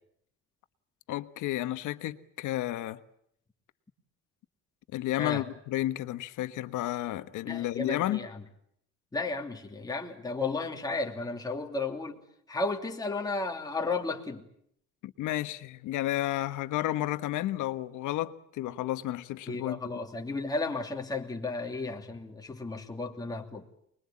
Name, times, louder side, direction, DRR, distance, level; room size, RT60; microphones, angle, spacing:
voice 1, 1.1-3.0 4.9-8.3 15.0-19.8, left 14 dB, 75° left, 1.4 m, -32 dB
voice 2, 7.5-8.3 9.1-12.2 12.5-14.4 19.5-23.6, left 3 dB, 10° left, 2.8 m, -33 dB
25.0 x 22.0 x 8.6 m
cardioid pair, 140°, 30 cm